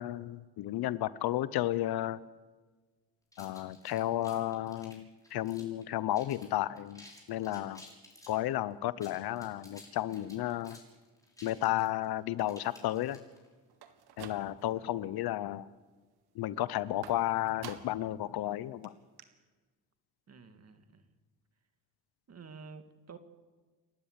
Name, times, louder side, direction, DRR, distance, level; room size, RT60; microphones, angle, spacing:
voice 1, 0.0-2.2 3.4-7.8 8.3-10.8 11.4-13.2 14.2-15.7 16.3-18.9, left 14 dB, 75° left, 18 dB, 0.9 m, -33 dB
sound 1, 3.3-5.8 6.1-6.5 6.8-8.4 8.9-13.5, left 1 dB, 10° left, 6.5 m, -55 dB
sound 2, 13.7-14.9 15.2-15.7 17.0-18.1 18.5-18.6 18.8-18.9 19.2-19.3, right 9 dB, 85° right, 1.9 m, -49 dB
voice 2, 20.3-21.1 22.3-23.2, right 5 dB, 40° right, 9 dB, 2.1 m, -50 dB
29.5 x 12.0 x 8.2 m, 1.4 s
cardioid pair, 85°, 38 cm